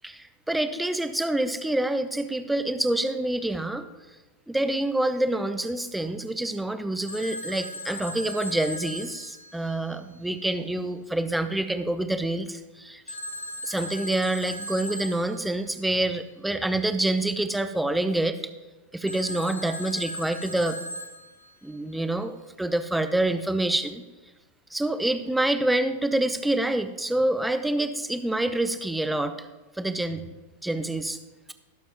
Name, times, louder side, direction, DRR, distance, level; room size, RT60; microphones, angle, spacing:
voice 1, 0.0-3.9 4.5-13.2 13.6-18.4 18.9-20.8 21.6-24.0 24.7-29.4 29.8-30.2 30.6-31.2, right 1 dB, 5° right, 10 dB, 0.6 m, -27 dB
Telephone, 7.1-10.2 13.1-15.6 19.1-21.7, equal, 80° left, 1.0 m, -38 dB
17.0 x 7.3 x 3.0 m, 1.2 s
figure-of-eight pair, 90°, 0 cm